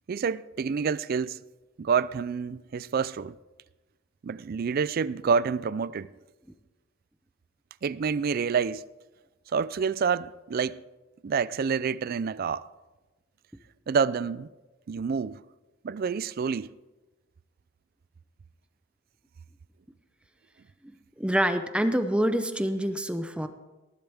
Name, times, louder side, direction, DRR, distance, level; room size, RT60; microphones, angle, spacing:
voice 1, 0.1-1.4 1.8-3.4 4.2-6.1 7.8-8.8 9.5-10.8 11.2-12.7 13.9-14.5 14.9-15.4 15.8-16.8, right 6 dB, 45° right, 0.3 m, -28 dB
voice 2, 21.2-23.5, equal, 5° right, 0.7 m, -26 dB
19.0 x 11.0 x 3.5 m
head